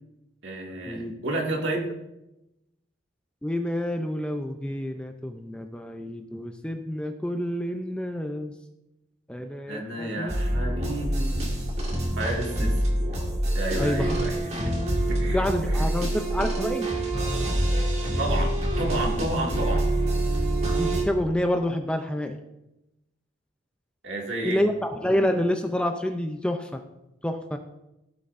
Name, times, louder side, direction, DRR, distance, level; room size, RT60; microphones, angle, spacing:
voice 1, 0.4-1.9 9.7-11.4 12.2-12.8 13.5-14.7 15.1-15.8 18.2-19.9 24.0-24.6, right 1 dB, 65° right, -1 dB, 2.1 m, -31 dB
voice 2, 3.4-8.5 9.3-10.3 12.6-12.7 13.8-14.2 15.3-16.9 20.6-22.4 24.4-26.8 27.2-27.6, left 1 dB, 5° left, 5 dB, 0.4 m, -28 dB
sound 1, 10.3-21.0, right 1 dB, 35° right, 1.8 m, -26 dB
15.0 x 8.2 x 2.6 m, 0.92 s
head